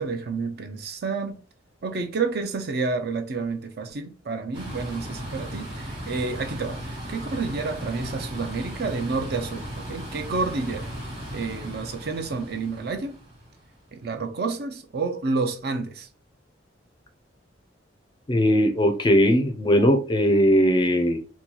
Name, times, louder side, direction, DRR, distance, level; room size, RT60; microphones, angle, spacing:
voice 1, 0.0-1.4 1.8-10.9 11.3-13.2 13.9-16.1, right 4 dB, 55° right, 0.5 m, -29 dB
sound 1, 4.5-13.8, equal, 30° right, 1.2 m, -36 dB
voice 2, 18.3-21.2, equal, 25° left, 0.4 m, -19 dB
2.9 x 2.3 x 3.8 m
head